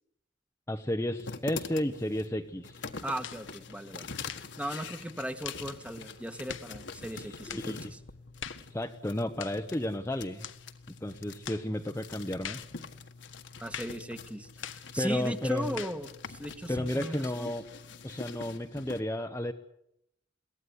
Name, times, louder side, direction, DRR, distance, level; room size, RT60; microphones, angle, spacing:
voice 1, 0.7-2.8 7.1-7.8 8.7-10.4 11.0-12.6 15.0-15.8 16.7-17.7 18.0-19.5, left 1 dB, 15° left, 5 dB, 0.9 m, -33 dB
sound 1, 1.2-19.0, left 4 dB, 65° left, 1.6 m, -45 dB
voice 2, 3.0-4.1 4.6-8.0 13.6-17.5, equal, 5° right, 9 dB, 1.5 m, -37 dB
sound 2, 3.2-3.5 4.2-4.6 5.4-5.7 6.5-6.7 7.5-7.7 8.4-8.7 9.4-9.6 10.4-10.6 11.5-11.7 12.4-12.7 13.7-14.0 14.6-14.9 15.8-16.0, left 9 dB, 90° left, 1.2 m, -42 dB
22.5 x 17.0 x 9.7 m, 0.78 s
head